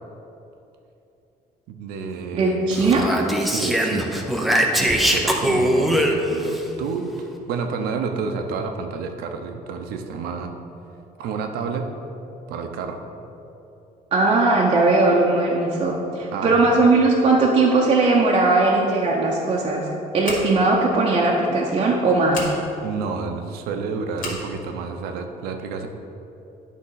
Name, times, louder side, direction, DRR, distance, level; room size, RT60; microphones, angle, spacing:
voice 1, 1.7-2.8 3.4-4.4 4.7-10.5 11.2-11.9 12.5-13.0 16.3-16.8 22.8-25.9, right 5 dB, 85° right, 5 dB, 0.7 m, -30 dB
voice 2, 2.3-3.1 14.1-19.9 20.1-22.5, right 3 dB, 35° right, -3 dB, 0.7 m, -19 dB
Speech, 2.7-6.6, equal, ahead, 0.5 m, -21 dB
Scissors, 20.2-20.7 22.3-22.5 24.1-24.4, left 2 dB, 60° left, 1.9 m, -32 dB
10.0 x 3.7 x 5.7 m, 2.9 s
cardioid pair, 155°, 16 cm